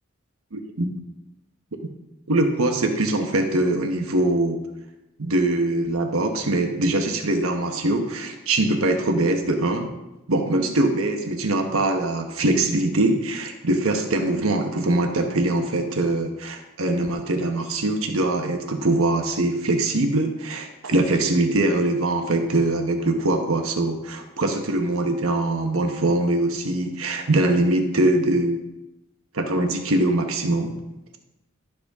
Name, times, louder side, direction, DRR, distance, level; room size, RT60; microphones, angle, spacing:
voice 1, 0.5-0.9 2.3-4.6 5.2-9.9 10.3-28.6 29.3-30.7, right 2 dB, 90° right, 4 dB, 1.2 m, -22 dB
12.0 x 7.8 x 3.6 m, 0.97 s
head